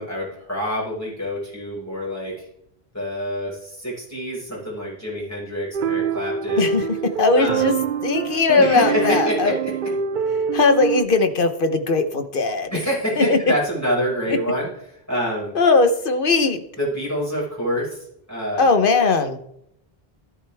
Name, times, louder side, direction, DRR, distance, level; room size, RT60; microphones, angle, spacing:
voice 1, 0.0-2.4 2.9-6.7 7.3-7.8 8.6-9.9 12.7-15.5 16.8-18.7, equal, 15° left, -6 dB, 5.5 m, -26 dB
sound 1, 5.7-11.0, right 7 dB, 60° right, 0.7 m, -25 dB
voice 2, 6.6-7.7 8.0-9.5 10.5-12.7 13.2-13.4 14.3-14.4 15.5-16.6 18.6-19.4, left 3 dB, 60° left, 8 dB, 1.2 m, -19 dB
13.5 x 11.5 x 3.5 m, 0.75 s
omnidirectional pair, 1.0 m